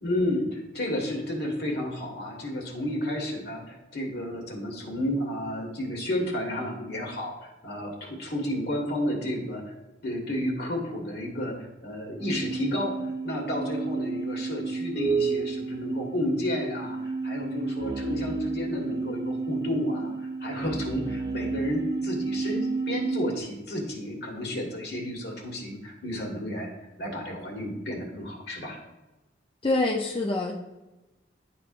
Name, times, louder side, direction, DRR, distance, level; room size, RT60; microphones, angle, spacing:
voice 1, 0.0-9.6 10.0-26.7 27.0-28.8, left 1 dB, 60° left, 1 dB, 1.7 m, -31 dB
sound 1, 12.2-23.4, right 4 dB, 20° right, 0.4 m, -31 dB
voice 2, 29.6-30.5, left 2 dB, 30° left, -2 dB, 0.5 m, -25 dB
11.0 x 4.4 x 2.5 m, 1.1 s
head